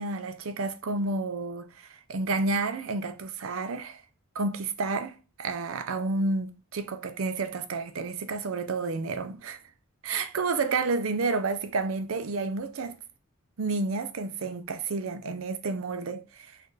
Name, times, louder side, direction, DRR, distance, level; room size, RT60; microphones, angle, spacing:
voice 1, 0.0-4.0 4.3-9.6 10.0-13.0 13.6-16.6, right 3 dB, 80° right, 0.5 m, -30 dB
6.4 x 2.5 x 3.1 m
head